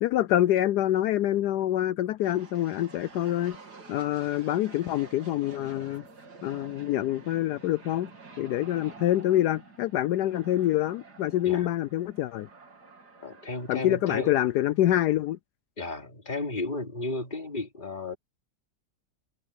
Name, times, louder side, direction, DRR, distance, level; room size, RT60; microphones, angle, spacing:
voice 1, 0.0-3.6 3.9-6.0 6.4-8.1 8.4-12.5 13.7-15.4, left 13 dB, 75° left, 1.1 m, -26 dB
sound 1, 2.2-15.3, right 4 dB, 65° right, 3.2 m, -50 dB
voice 2, 13.2-14.3 15.8-18.2, left 2 dB, 25° left, 3.1 m, -33 dB
omnidirectional pair, 1.9 m